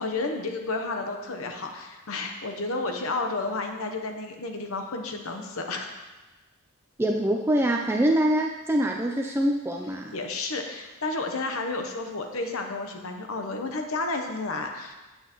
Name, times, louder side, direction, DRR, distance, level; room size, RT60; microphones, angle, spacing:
voice 1, 0.0-6.0 10.1-14.9, left 3 dB, 75° left, 4 dB, 0.8 m, -31 dB
voice 2, 7.0-10.1, right 1 dB, 10° right, 1 dB, 0.3 m, -24 dB
9.0 x 8.0 x 3.0 m, 1.1 s
head